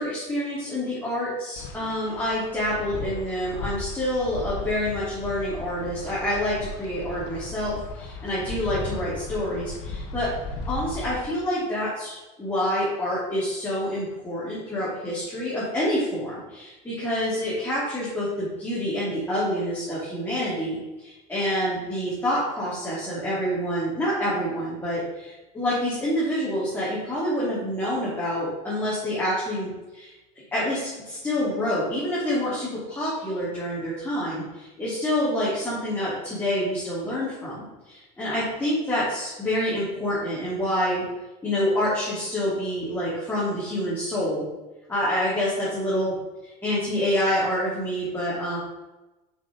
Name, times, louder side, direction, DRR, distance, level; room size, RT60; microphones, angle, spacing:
voice 1, 0.0-10.3 10.7-30.1 30.5-41.1 41.4-44.5 44.9-46.2 46.4-48.6, left 1 dB, 10° left, -9 dB, 2.8 m, -27 dB
Wind, 1.6-11.3, left 2 dB, 65° left, 1.5 m, -36 dB
6.3 x 6.3 x 5.2 m, 1.1 s
supercardioid pair, 145°, 20 cm